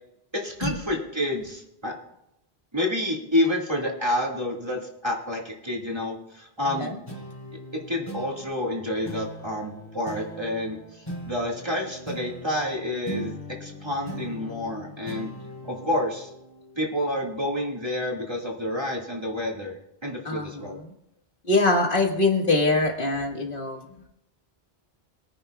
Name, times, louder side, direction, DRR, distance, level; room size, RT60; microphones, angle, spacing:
voice 1, 0.3-2.0 2.7-6.9 7.9-15.3 15.6-16.3 16.8-20.8, left 1 dB, 25° right, -1 dB, 1.9 m, -29 dB
sound 1, 7.1-17.9, right 1 dB, 25° left, 3.3 m, -40 dB
voice 2, 20.3-20.8 21.5-23.8, left 2 dB, 55° left, 2 dB, 1.8 m, -23 dB
23.0 x 9.7 x 2.3 m, 0.82 s
omnidirectional pair, 1.1 m